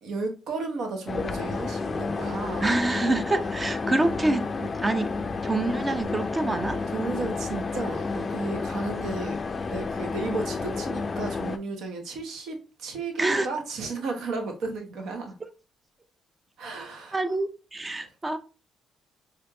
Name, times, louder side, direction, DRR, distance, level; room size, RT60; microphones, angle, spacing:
voice 1, 0.0-2.7 6.9-9.4 9.7-15.3 16.6-17.2, right 3 dB, 75° right, 0.9 m, -33 dB
sound 1, 1.1-11.6, left 4 dB, 35° left, 0.3 m, -31 dB
voice 2, 2.6-6.8 13.2-13.5 17.1-18.4, right 2 dB, 20° right, 0.5 m, -26 dB
4.4 x 2.5 x 2.3 m
cardioid pair, 90°, 0 cm